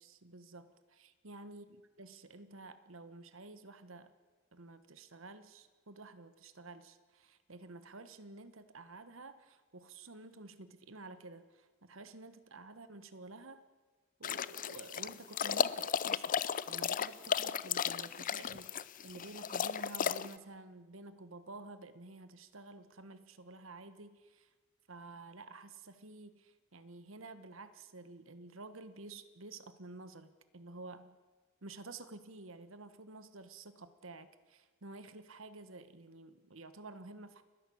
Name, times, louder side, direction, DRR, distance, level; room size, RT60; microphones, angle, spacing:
voice 1, 0.0-4.1 4.5-13.6 14.2-16.3 16.7-24.5 24.9-31.2 31.6-37.4, right 2 dB, 70° right, 12 dB, 1.4 m, -51 dB
sound 1, 14.2-20.3, left 7 dB, 40° left, 0.5 m, -35 dB
30.0 x 11.0 x 8.6 m, 1.3 s
head